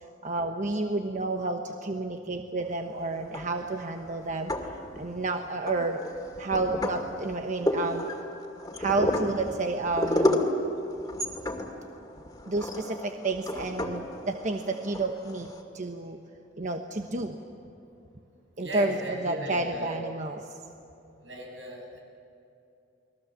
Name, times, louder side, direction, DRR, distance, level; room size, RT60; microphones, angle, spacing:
voice 1, 0.2-4.5 4.9-6.0 6.4-8.1 8.8-10.4 12.5-16.2 16.6-17.4 18.6-20.6, right 3 dB, 40° right, 4 dB, 1.1 m, -30 dB
sound 1, 3.2-3.8 4.3-5.2 5.7-15.6, left 1 dB, 20° left, 2.3 m, -31 dB
voice 2, 18.6-20.1 21.2-22.0, right 1 dB, 80° right, -1 dB, 7.4 m, -37 dB
30.0 x 21.5 x 7.4 m, 2.7 s
head